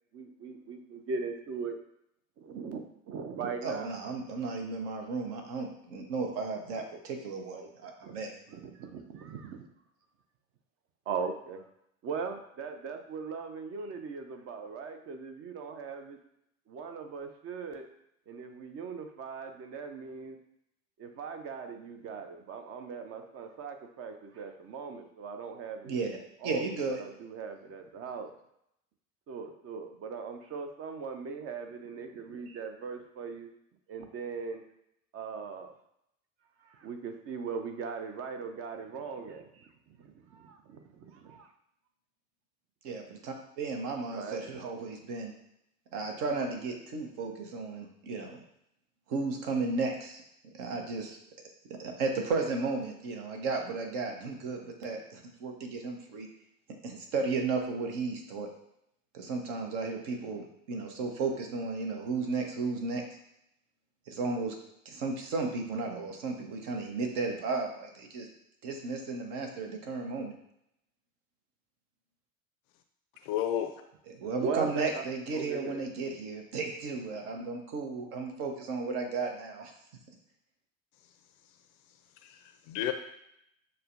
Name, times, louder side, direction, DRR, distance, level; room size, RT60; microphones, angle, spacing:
voice 1, 0.1-1.8 2.4-3.9 7.5-7.7 8.0-8.2 8.5-9.7 11.1-11.7 12.0-16.2 16.7-17.9 18.3-20.4 21.0-25.9 26.4-28.3 29.3-33.5 33.9-34.6 35.1-35.8 36.6-41.5 44.1-44.4 74.4-75.0 75.3-75.8, right 5 dB, 35° right, 6 dB, 0.6 m, -39 dB
voice 2, 3.6-8.4 25.8-26.1 26.4-27.0 42.8-45.3 45.9-48.4 49.1-50.2 50.5-51.2 51.7-56.3 56.8-58.5 59.1-63.0 64.1-64.5 64.8-68.3 68.6-70.3 74.2-79.7, right 4 dB, 55° right, 3 dB, 0.9 m, -34 dB
voice 3, 73.2-73.7 82.2-82.9, left 11 dB, 50° left, 8 dB, 0.5 m, -32 dB
6.5 x 2.2 x 2.5 m, 0.77 s
figure-of-eight pair, 65°, 41 cm